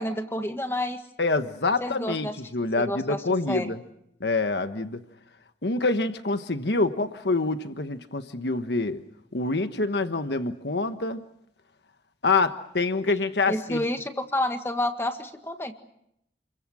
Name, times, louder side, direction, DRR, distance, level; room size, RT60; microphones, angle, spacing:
voice 1, 0.0-1.0 1.8-2.3 2.8-3.7 13.5-15.7, left 1 dB, 15° left, 6 dB, 1.7 m, -29 dB
voice 2, 1.2-3.8 4.2-5.0 5.6-9.0 9.3-11.2 12.2-13.8, left 3 dB, 75° left, 9 dB, 1.4 m, -26 dB
30.0 x 23.5 x 6.4 m, 0.77 s
head